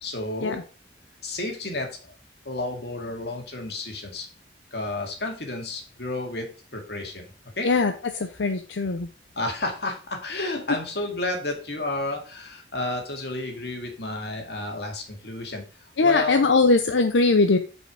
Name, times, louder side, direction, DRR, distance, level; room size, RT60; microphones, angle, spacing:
voice 1, 0.0-0.6 1.2-2.1 2.4-4.3 4.7-7.7 9.4-16.6, left 2 dB, 60° left, 2 dB, 2.3 m, -31 dB
voice 2, 7.6-9.1 16.0-17.6, left 3 dB, 90° left, 8 dB, 0.7 m, -21 dB
7.9 x 5.4 x 4.8 m, 0.36 s
head